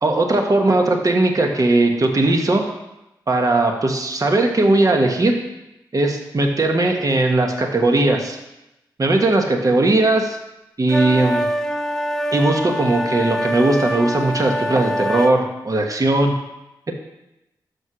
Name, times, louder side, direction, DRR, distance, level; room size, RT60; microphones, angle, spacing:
voice 1, 0.0-2.6 3.3-5.4 5.9-8.4 9.0-10.4 10.8-11.5 12.3-16.3, right 2 dB, 45° right, 3 dB, 1.2 m, -18 dB
sound 1, 10.9-15.4, equal, 5° left, 0.6 m, -24 dB
6.3 x 5.3 x 6.1 m, 0.93 s
cardioid pair, 55°, 8 cm